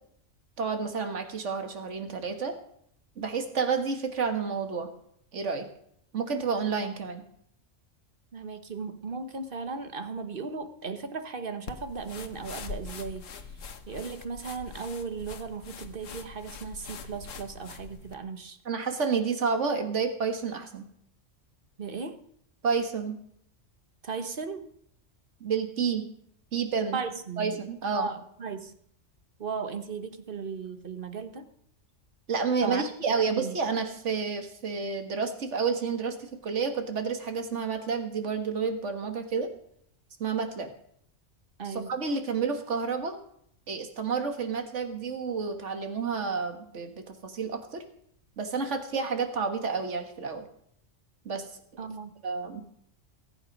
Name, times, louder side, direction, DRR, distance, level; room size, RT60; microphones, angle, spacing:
voice 1, 0.6-2.5 3.2-4.9 5.3-5.7 6.1-7.2 18.7-20.8 22.6-23.2 25.4-26.1 26.5-27.0 27.4-28.1 32.3-39.5 40.2-40.7 41.7-43.2 43.7-47.8 48.4-50.5 51.3-51.5 52.2-52.7, right 5 dB, 70° right, 6 dB, 1.9 m, -30 dB
voice 2, 8.3-13.5 13.9-18.6 21.8-22.2 24.0-24.7 26.9-27.5 27.9-28.8 29.4-31.5 32.6-32.9 33.2-33.6 41.6-42.0 51.8-52.1, right 5 dB, 45° right, 8 dB, 1.4 m, -36 dB
sound 1, 11.7-18.2, left 5 dB, 85° left, 1.5 m, -43 dB
22.5 x 8.9 x 5.3 m, 0.70 s
omnidirectional pair, 1.3 m